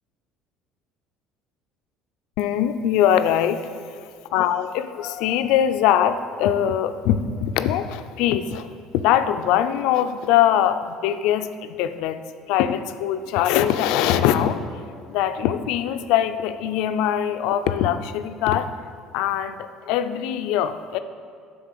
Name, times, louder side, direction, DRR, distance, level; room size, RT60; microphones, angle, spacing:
voice 1, 2.4-14.8 15.1-18.7 19.1-21.0, left 10 dB, 75° left, 10 dB, 0.4 m, -22 dB
9.5 x 3.7 x 6.7 m, 2.2 s
cardioid pair, 110°, 0 cm